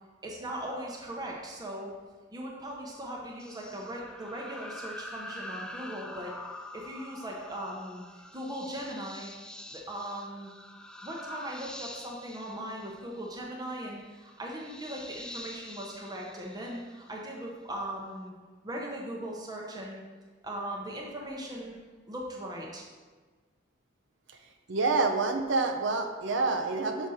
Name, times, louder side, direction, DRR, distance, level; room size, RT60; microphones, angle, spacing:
voice 1, 0.2-1.9 2.3-6.3 6.7-8.0 8.3-9.3 9.7-10.5 11.0-18.3 18.6-20.0 20.4-21.8 22.1-22.8, right 1 dB, 20° right, -2 dB, 0.8 m, -39 dB
sound 1, 3.4-17.3, left 1 dB, 5° left, 0.3 m, -45 dB
voice 2, 24.7-27.1, right 3 dB, 70° right, 5 dB, 0.7 m, -27 dB
6.4 x 5.1 x 4.2 m, 1.4 s
head